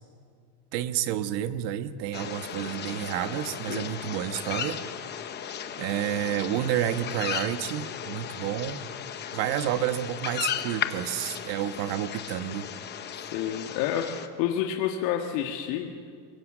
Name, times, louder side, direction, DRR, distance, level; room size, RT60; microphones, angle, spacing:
voice 1, 0.7-4.8 5.8-8.8 9.3-12.7, right 11 dB, 85° right, 10 dB, 1.4 m, -30 dB
sound 1, 2.1-14.3, left 9 dB, 20° left, 0.8 m, -36 dB
voice 2, 13.1-16.1, left 10 dB, 90° left, 2 dB, 1.7 m, -29 dB
24.0 x 23.0 x 7.4 m, 2.3 s
cardioid pair, 175°, 48 cm